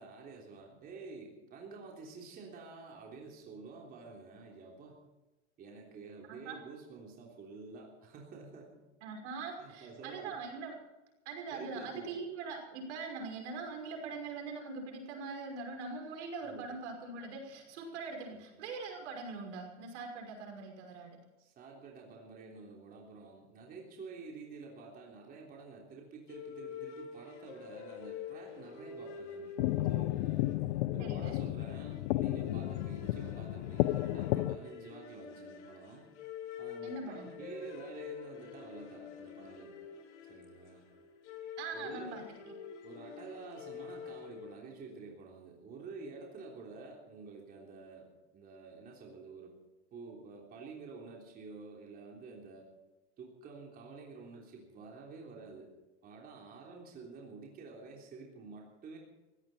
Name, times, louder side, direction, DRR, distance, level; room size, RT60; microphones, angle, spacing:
voice 1, 0.0-5.0 5.6-8.8 9.6-10.4 11.5-12.2 16.4-16.8 18.3-18.4 21.4-29.5 29.9-30.4 30.9-36.1 36.6-39.7 40.3-40.8 41.7-42.2 42.8-49.5 49.9-52.7 53.2-55.7 56.0-59.0, right 4 dB, 25° right, -1 dB, 3.5 m, -49 dB
voice 2, 9.0-10.8 11.3-21.2 31.0-31.4 36.8-37.4 41.6-42.2, right 4 dB, 80° right, 2 dB, 5.8 m, -42 dB
sound 1, 26.3-44.8, left 6 dB, 90° left, 4.0 m, -47 dB
sound 2, 29.6-34.6, left 17 dB, 65° left, 0.7 m, -32 dB
19.0 x 16.0 x 4.4 m, 1.0 s
supercardioid pair, 150°, 34 cm